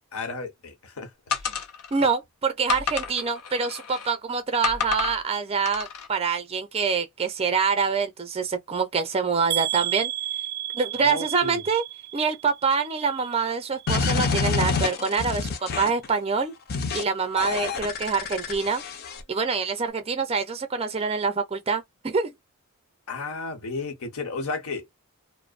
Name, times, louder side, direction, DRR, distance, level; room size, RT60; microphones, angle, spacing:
voice 1, 0.1-1.1 11.0-11.6 23.1-25.0, left 3 dB, 65° left, 0.9 m, -33 dB
sound 1, 1.3-2.1 2.7-4.2 4.6-5.2 5.7-6.1, left 6 dB, 90° left, 0.6 m, -30 dB
voice 2, 1.9-10.1 10.7-11.8 12.1-16.5 16.9-18.8 19.3-22.3, right 5 dB, 25° right, 0.5 m, -25 dB
sound 2, 9.5-13.5 13.8-14.4 14.9-15.0 15.3-15.4, right 13 dB, 80° right, 0.4 m, -32 dB
sound 3, 13.9-16.1 16.7-17.0 17.4-19.2, left 5 dB, 45° left, 0.5 m, -27 dB
2.5 x 2.0 x 2.4 m
head